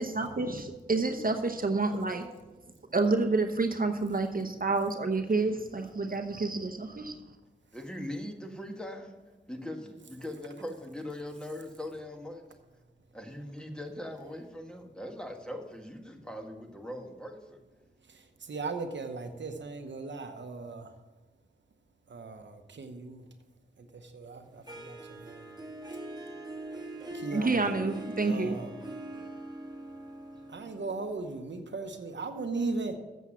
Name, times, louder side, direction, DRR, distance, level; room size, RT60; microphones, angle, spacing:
voice 1, 0.0-2.3 2.9-7.1 27.3-28.6, right 3 dB, 50° right, 6 dB, 0.9 m, -29 dB
voice 2, 7.7-9.1 9.5-12.4 13.1-17.6, left 1 dB, 5° left, 3 dB, 1.7 m, -40 dB
voice 3, 18.1-20.9 22.1-23.2 23.9-25.4 27.1-27.7 28.2-28.7 30.5-33.0, right 3 dB, 75° right, 6 dB, 0.9 m, -37 dB
Harp, 24.7-31.6, right 2 dB, 20° right, 1.7 m, -43 dB
8.0 x 7.2 x 7.2 m, 1.2 s
cardioid pair, 40°, 19 cm